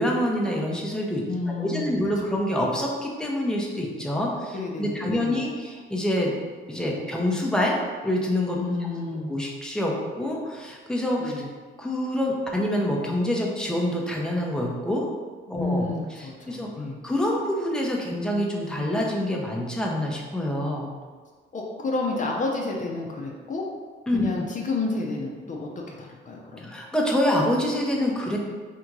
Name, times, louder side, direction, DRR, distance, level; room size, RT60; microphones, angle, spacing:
voice 1, 0.0-6.3 6.7-7.8 8.0-8.6 9.3-11.3 11.8-15.1 15.5-15.8 16.5-16.7 17.0-20.9 24.1-24.3 26.6-28.4, left 1 dB, 5° left, -2 dB, 0.8 m, -26 dB
voice 2, 1.3-1.9 4.5-5.4 8.6-9.3 11.2-11.5 15.6-17.0 21.5-23.6 24.1-26.8, left 3 dB, 40° left, -1 dB, 0.7 m, -30 dB
3.7 x 2.6 x 4.6 m, 1.5 s
cardioid pair, 90°, 20 cm